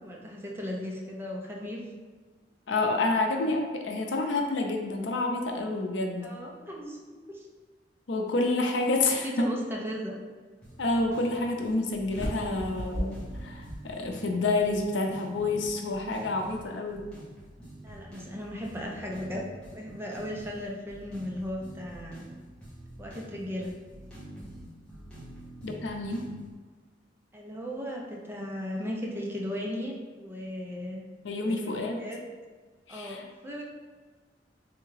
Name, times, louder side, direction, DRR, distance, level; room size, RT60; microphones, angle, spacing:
voice 1, 0.0-1.8 6.2-7.0 7.3-7.5 9.2-10.2 17.8-22.3 23.0-23.7 27.3-31.0 31.4-32.2 32.9-33.6, equal, 15° right, -2 dB, 0.5 m, -36 dB
voice 2, 2.7-6.3 8.1-9.5 10.8-17.1 25.6-26.3 31.2-32.0 32.9-33.2, left 2 dB, 85° left, 3 dB, 0.6 m, -28 dB
sound 1, 10.6-26.5, right 1 dB, 5° left, 1.1 m, -47 dB
sound 2, 12.1-14.5, equal, 80° right, 1.3 m, -36 dB
3.6 x 3.4 x 3.2 m, 1.4 s
head